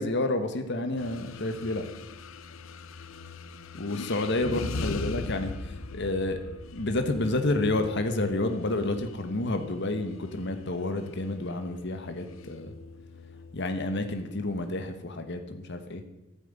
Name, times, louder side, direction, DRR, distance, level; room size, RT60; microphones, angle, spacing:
voice 1, 0.0-1.8 3.7-6.4 6.7-12.7 13.5-16.0, left 2 dB, 55° left, 7 dB, 1.2 m, -30 dB
sound 1, 1.0-14.7, left 3 dB, 70° left, 0.6 m, -41 dB
12.0 x 9.3 x 8.0 m, 1.0 s
head